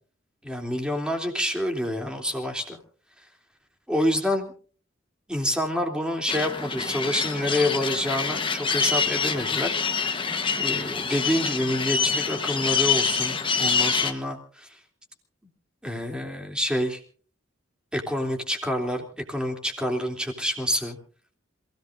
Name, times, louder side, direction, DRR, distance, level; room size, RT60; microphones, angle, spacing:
voice 1, 0.4-2.8 3.9-4.5 5.3-10.1 10.6-14.7 15.8-17.0 17.9-21.0, left 1 dB, 5° right, 2 dB, 3.2 m, -27 dB
sound 1, 6.3-14.1, left 5 dB, 25° left, 1.3 m, -26 dB
28.0 x 17.5 x 2.7 m, 0.41 s
head